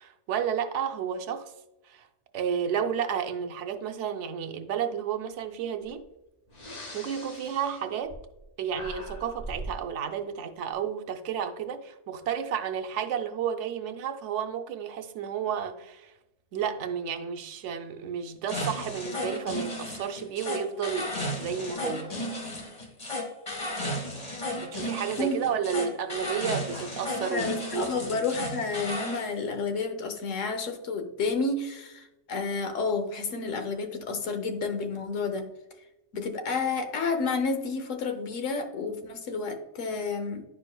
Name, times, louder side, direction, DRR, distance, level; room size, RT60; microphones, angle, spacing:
voice 1, 0.0-1.5 1.8-2.1 2.3-6.0 6.9-8.2 8.6-16.1 16.5-21.1 21.4-22.2 24.6-28.3, right 7 dB, 75° right, 0.9 m, -32 dB
Breathing, 5.8-6.0 6.5-8.4 8.7-9.8, equal, 70° left, 1.8 m, -41 dB
sound 1, 18.5-29.3, left 1 dB, 30° left, 1.5 m, -34 dB
voice 2, 27.3-35.5 36.1-40.4, left 4 dB, 90° left, 1.2 m, -30 dB
10.5 x 4.7 x 2.2 m
omnidirectional pair, 1.3 m